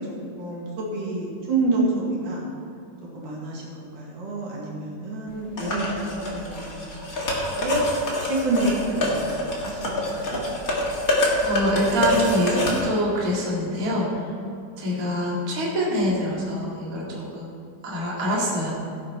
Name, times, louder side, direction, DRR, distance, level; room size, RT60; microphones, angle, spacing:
voice 1, 0.4-2.5 3.1-7.8 8.3-10.5 14.9-15.1, right 2 dB, 75° right, -4 dB, 3.7 m, -28 dB
sound 1, 5.6-12.8, left 1 dB, 30° left, 1.9 m, -26 dB
voice 2, 11.4-14.2 14.8-18.7, equal, 30° right, -5 dB, 2.4 m, -25 dB
16.5 x 7.8 x 4.4 m, 2.6 s
omnidirectional pair, 3.7 m